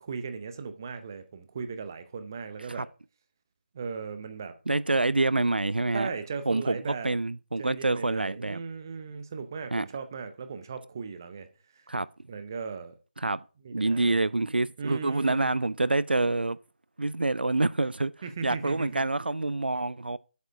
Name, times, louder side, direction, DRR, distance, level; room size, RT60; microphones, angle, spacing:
voice 1, 0.0-2.9 3.7-4.5 5.9-7.1 7.6-11.8 12.3-12.9 13.6-14.2 14.8-15.5 18.2-19.0, right 5 dB, 20° right, 0.6 m, -37 dB
voice 2, 4.7-6.1 6.5-8.6 9.7-9.9 11.9-12.1 13.2-13.4 13.7-16.6 17.0-18.1 18.4-20.2, right 2 dB, 75° right, 0.4 m, -27 dB
8.0 x 5.0 x 6.3 m
figure-of-eight pair, 160°, 5 cm